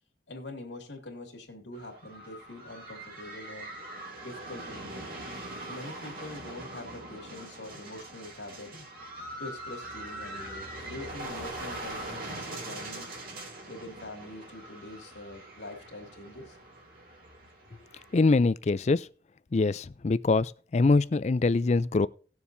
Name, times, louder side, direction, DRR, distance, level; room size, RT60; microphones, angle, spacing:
voice 1, 0.3-3.7 4.2-5.2 5.7-8.8 9.4-13.1 13.7-16.6, left 1 dB, 80° left, 2.4 m, -44 dB
sound 1, 1.7-18.3, right 1 dB, 50° right, 2.7 m, -42 dB
voice 2, 18.1-19.1 19.5-22.1, left 3 dB, 35° left, 0.4 m, -24 dB
18.5 x 7.1 x 2.7 m
head